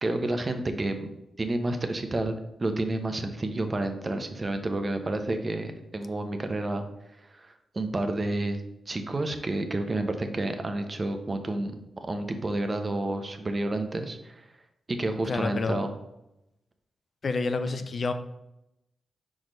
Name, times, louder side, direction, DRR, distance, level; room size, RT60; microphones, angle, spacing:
voice 1, 0.0-1.1 1.4-6.9 7.3-8.6 8.9-14.4 14.9-15.9, right 2 dB, 35° right, 7 dB, 0.9 m, -30 dB
voice 2, 15.3-15.8 17.2-18.1, left 4 dB, 55° left, 9 dB, 0.5 m, -28 dB
4.7 x 4.3 x 5.2 m, 0.87 s
cardioid pair, 65°, 0 cm